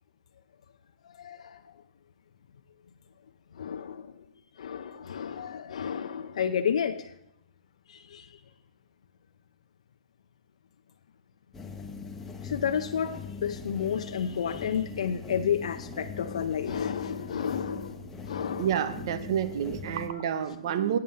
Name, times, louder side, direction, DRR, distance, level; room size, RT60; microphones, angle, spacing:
voice 1, 1.0-1.7 3.5-4.2 4.5-7.1 7.9-8.4 12.4-18.8, left 8 dB, 65° left, 6 dB, 0.6 m, -31 dB
sound 1, 11.5-20.1, left 4 dB, 10° left, 0.6 m, -41 dB
voice 2, 18.6-21.0, right 9 dB, 40° right, 12 dB, 0.8 m, -29 dB
8.8 x 7.6 x 5.4 m, 0.78 s
hypercardioid pair, 165°, 4 cm